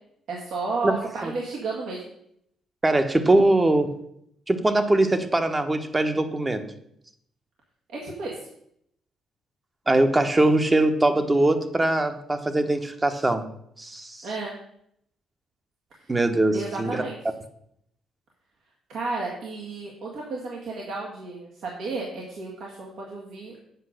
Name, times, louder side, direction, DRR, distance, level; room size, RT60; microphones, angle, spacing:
voice 1, 0.3-2.0 7.9-8.4 14.2-14.5 16.5-17.2 18.9-23.6, right 3 dB, 75° right, -3 dB, 1.9 m, -32 dB
voice 2, 2.8-3.9 4.5-6.7 9.9-13.4 13.8-14.3 16.1-17.0, right 2 dB, 20° right, 8 dB, 1.0 m, -22 dB
8.1 x 5.4 x 6.4 m, 0.73 s
cardioid pair, 90°, 0 cm